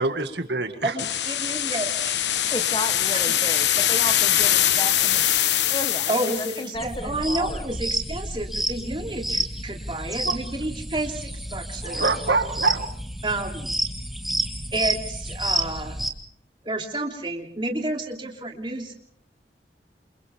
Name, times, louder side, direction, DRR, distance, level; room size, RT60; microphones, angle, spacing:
voice 1, 0.0-0.9 10.2-10.4 11.8-12.9, right 3 dB, 80° right, 7 dB, 1.9 m, -25 dB
voice 2, 0.8-1.9 6.1-12.1 13.2-13.7 14.7-15.9 16.6-18.9, right 2 dB, 30° right, 1 dB, 3.0 m, -30 dB
sound 1, 1.0-6.7, left 11 dB, 85° left, 1.1 m, -22 dB
voice 3, 2.5-5.2 5.7-7.7, left 2 dB, 25° left, 9 dB, 1.1 m, -33 dB
sound 2, 6.7-16.1, right 1 dB, ahead, 1.6 m, -30 dB
28.5 x 28.0 x 3.6 m, 0.64 s
head